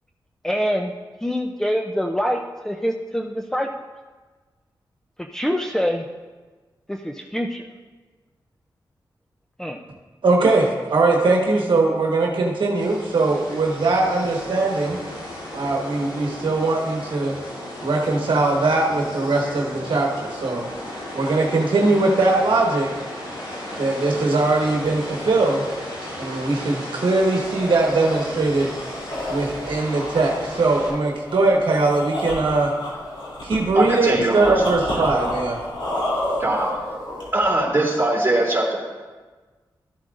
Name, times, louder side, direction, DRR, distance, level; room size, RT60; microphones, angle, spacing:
voice 1, 0.4-0.9 1.2-3.7 5.2-6.1 6.9-7.7 9.6-9.8, equal, 5° left, 2 dB, 0.5 m, -25 dB
voice 2, 10.2-15.0 15.5-17.3 17.8-20.6 21.1-22.9 23.8-25.6 26.2-28.7 29.3-32.7 33.4-35.6, right 3 dB, 70° right, -1 dB, 1.2 m, -20 dB
sound 1, 12.7-30.9, left 1 dB, 90° left, 3.0 m, -35 dB
sound 2, 27.2-37.5, left 1 dB, 70° left, 3.0 m, -30 dB
voice 3, 33.7-34.5 35.0-35.2 36.4-36.7 37.3-38.8, right 2 dB, 25° right, -4 dB, 2.9 m, -21 dB
13.0 x 7.5 x 2.5 m, 1.3 s
cardioid pair, 60°, 9 cm